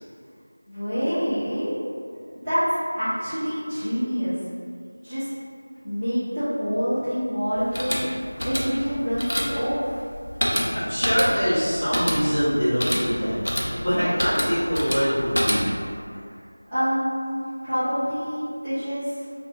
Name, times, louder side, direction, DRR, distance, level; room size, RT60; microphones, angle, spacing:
voice 1, 0.7-1.7 2.3-4.4 5.0-5.3 5.8-8.1 8.4-10.0 16.7-19.2, equal, 5° right, -28 dB, 0.6 m, -26 dB
sound 1, 7.6-15.9, equal, 80° left, 0.5 m, -28 dB
voice 2, 10.5-15.6, equal, 20° left, -17 dB, 1.3 m, -24 dB
2.9 x 2.1 x 2.8 m, 2.2 s
figure-of-eight pair, 175°, 0 cm